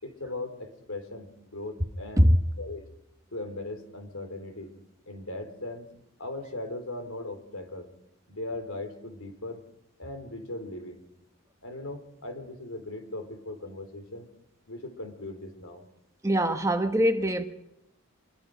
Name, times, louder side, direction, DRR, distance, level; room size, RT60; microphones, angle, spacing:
voice 1, 0.0-2.9 3.3-4.7 5.1-5.9 6.2-7.9 8.3-9.6 10.0-11.0 11.6-14.3 14.7-15.8, left 2 dB, 85° left, 3.8 m, -38 dB
voice 2, 16.2-17.4, equal, 15° right, 1.2 m, -22 dB
25.5 x 22.5 x 5.2 m
head